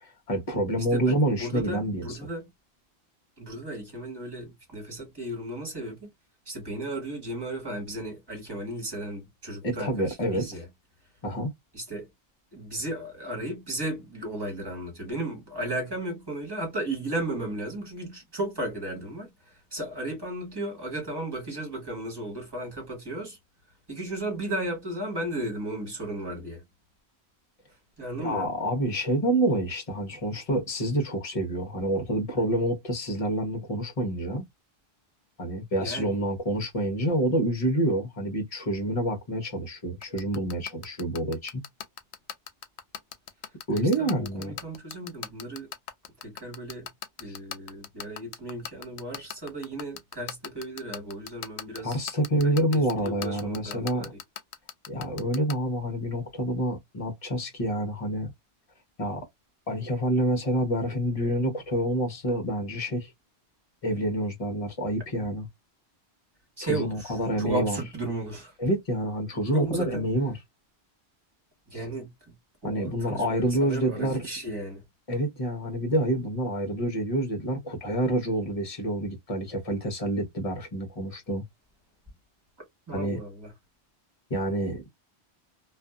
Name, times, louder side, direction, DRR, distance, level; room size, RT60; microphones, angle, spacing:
voice 1, 0.0-2.2 9.6-10.5 11.2-11.5 28.2-34.5 35.4-41.6 43.7-44.5 47.3-47.4 51.8-54.1 54.9-58.3 59.0-59.2 59.7-63.1 63.8-65.5 66.6-67.8 68.6-70.4 71.7-71.8 72.6-74.2 75.1-81.4 82.9-83.2 84.3-84.8, right 1 dB, 35° left, 0.9 m, -27 dB
voice 2, 0.9-2.5 3.4-6.1 6.4-10.7 11.7-12.1 12.5-23.4 23.9-26.6 28.0-28.5 35.7-36.2 43.7-45.7 46.2-46.9 47.2-54.2 66.6-68.5 69.5-70.1 71.7-72.3 72.6-74.8 82.9-83.5, right 1 dB, 25° right, 1.5 m, -35 dB
sound 1, 40.0-55.5, left 9 dB, 80° left, 0.9 m, -36 dB
2.5 x 2.4 x 2.3 m
omnidirectional pair, 1.1 m